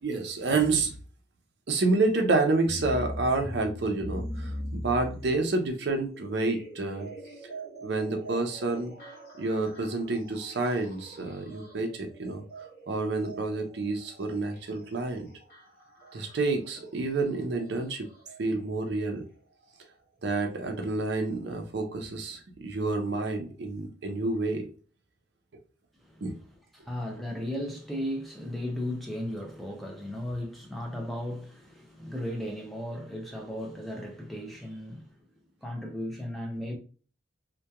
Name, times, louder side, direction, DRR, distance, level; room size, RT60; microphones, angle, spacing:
voice 1, 0.0-0.9 1.7-7.1 7.8-8.9 9.4-12.4 12.9-15.3 16.1-18.1 18.4-19.2 20.2-24.7 26.2-26.4, right 3 dB, 60° right, 0.5 m, -29 dB
sound 1, 2.5-18.4 19.6-19.7 20.5-20.6 21.3-21.4, equal, 50° left, 1.0 m, -42 dB
voice 2, 26.7-35.1 35.6-36.8, left 1 dB, ahead, 0.4 m, -36 dB
2.8 x 2.2 x 2.2 m
head